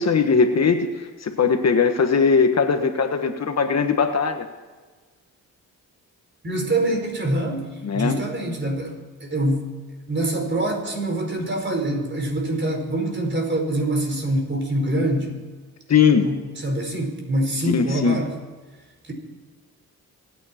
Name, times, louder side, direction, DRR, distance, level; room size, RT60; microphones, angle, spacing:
voice 1, 0.0-4.5 7.8-8.2 15.9-16.3 17.7-18.2, left 5 dB, 50° left, 6 dB, 1.5 m, -20 dB
voice 2, 6.4-7.7 7.9-9.7 10.1-15.3 16.2-18.3 19.1-19.2, right 1 dB, 35° right, 2 dB, 5.0 m, -25 dB
27.5 x 9.7 x 4.5 m, 1.4 s
cardioid pair, 85°, 33 cm